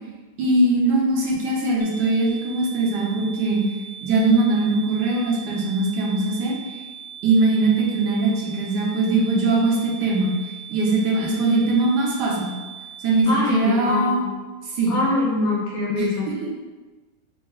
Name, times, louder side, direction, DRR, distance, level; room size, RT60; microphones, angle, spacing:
voice 1, 0.4-3.6 4.0-6.6 7.2-10.3 10.7-12.5 13.0-14.2 14.7-15.0 16.0-16.1 16.4-16.5, right 2 dB, 75° right, -3 dB, 1.3 m, -21 dB
sound 1, 1.8-13.2, right 8 dB, 60° right, 1.2 m, -40 dB
voice 2, 13.3-14.3 14.9-16.3, left 2 dB, 45° left, -5 dB, 0.6 m, -23 dB
3.9 x 2.0 x 3.6 m, 1.3 s
omnidirectional pair, 1.9 m